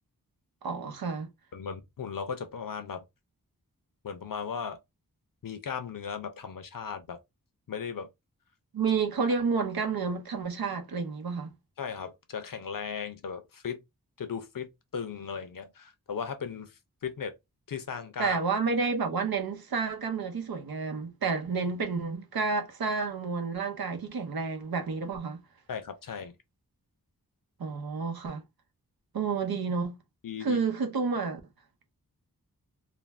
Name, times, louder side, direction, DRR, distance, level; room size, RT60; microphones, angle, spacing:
voice 1, 0.6-1.3 8.7-11.5 18.2-25.4 27.6-28.4 29.1-30.0 30.4-31.4, right 5 dB, 80° right, 0.7 m, -30 dB
voice 2, 1.5-3.0 4.0-4.8 5.4-7.2 7.7-8.1 11.8-13.8 14.2-16.7 17.0-17.3 17.7-18.4 25.7-26.4 30.2-30.6, left 6 dB, 65° left, 0.6 m, -37 dB
2.5 x 2.2 x 3.2 m
wide cardioid pair, 50°, 36 cm